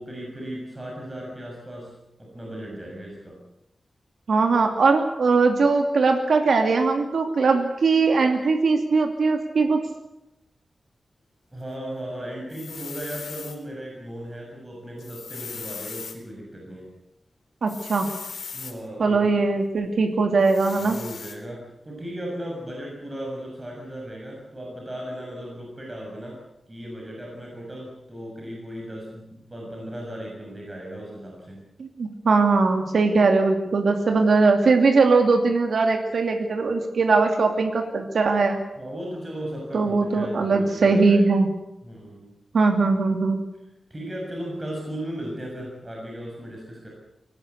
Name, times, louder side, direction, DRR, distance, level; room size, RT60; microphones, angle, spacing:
voice 1, 0.0-3.4 11.5-16.9 18.5-19.4 20.8-26.4 26.7-31.6 38.8-41.2 41.8-42.3 43.9-46.9, equal, 20° right, -2 dB, 6.9 m, -36 dB
voice 2, 4.3-9.8 17.6-18.1 19.0-21.0 31.8-38.6 39.7-41.5 42.5-43.4, right 4 dB, 80° right, 4 dB, 2.6 m, -20 dB
sound 1, 12.5-13.6 15.0-16.2 17.7-18.8 20.4-21.4, left 5 dB, 85° left, 4.0 m, -38 dB
24.0 x 18.5 x 8.2 m, 0.87 s
wide cardioid pair, 120°, 0 cm